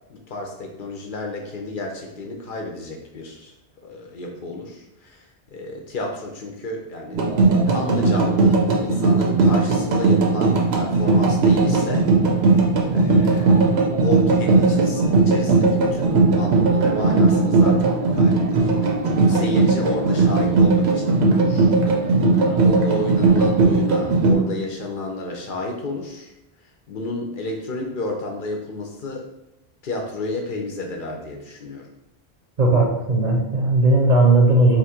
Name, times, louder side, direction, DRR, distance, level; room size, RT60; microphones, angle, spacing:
voice 1, 0.1-3.5 3.8-7.2 7.7-12.1 12.9-22.1 22.6-26.3 26.9-29.3 29.8-31.9, left 2 dB, 60° left, 1 dB, 0.7 m, -31 dB
sound 1, 7.1-24.3, right 3 dB, 85° right, 0.9 m, -18 dB
voice 2, 32.6-34.8, right 2 dB, 45° right, -1 dB, 0.7 m, -17 dB
2.9 x 2.4 x 4.2 m, 0.93 s
omnidirectional pair, 1.0 m